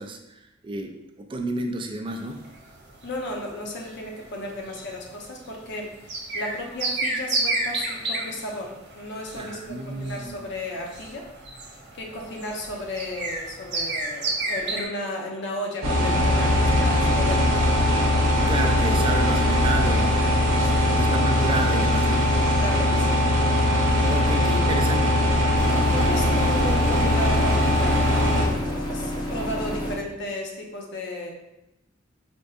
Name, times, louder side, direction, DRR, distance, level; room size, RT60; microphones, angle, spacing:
voice 1, 0.0-2.4 9.3-10.5 18.2-20.2 20.9-22.4 23.9-25.2, right 2 dB, 25° right, 5 dB, 0.3 m, -31 dB
sound 1, 2.1-14.8, right 2 dB, 60° right, 0.7 m, -32 dB
voice 2, 3.0-11.3 11.9-17.6 20.6-20.9 22.5-23.1 24.1-24.2 25.9-31.3, left 1 dB, 60° left, 0 dB, 0.6 m, -34 dB
sound 2, 15.8-28.5, left 1 dB, 85° right, 0.9 m, -21 dB
sound 3, 25.6-30.0, equal, 20° left, 0.6 m, -30 dB
4.4 x 2.6 x 2.3 m, 0.92 s
head